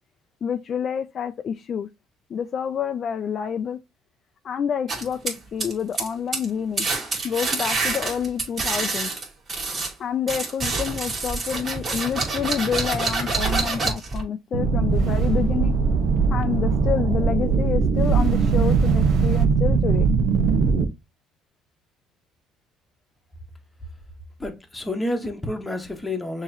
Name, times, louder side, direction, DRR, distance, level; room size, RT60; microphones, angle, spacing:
voice 1, 0.4-1.9 2.3-3.8 4.4-6.9 7.2-9.1 10.0-15.7 16.3-20.1, left 7 dB, 40° left, 0.4 m, -28 dB
sound 1, 4.9-6.1 6.3-6.5 6.8-9.9 10.3-14.2, right 3 dB, 35° right, 2.1 m, -27 dB
sound 2, 13.3-14.0 14.9-15.5 17.9-19.5, right 8 dB, 55° right, 0.5 m, -27 dB
sound 3, 14.5-20.8, right 5 dB, 70° right, 0.8 m, -20 dB
voice 2, 24.4-26.4, left 1 dB, 10° left, 1.1 m, -29 dB
6.4 x 3.0 x 2.7 m
cardioid pair, 125°, 0 cm